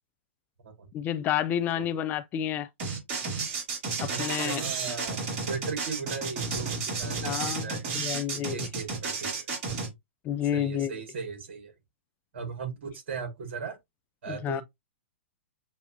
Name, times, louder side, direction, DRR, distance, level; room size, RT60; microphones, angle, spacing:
voice 1, 0.9-2.7 4.0-4.6 7.2-8.7 10.2-10.9 14.3-14.6, left 10 dB, 25° left, 0.4 m, -30 dB
sound 1, 2.8-9.9, right 4 dB, 40° right, 2.8 m, -32 dB
voice 2, 4.1-7.8 8.3-9.5 10.5-11.7 12.3-13.8 14.2-14.6, right 5 dB, 60° right, 2.1 m, -37 dB
7.4 x 2.7 x 2.6 m
hypercardioid pair, 115°, 7 cm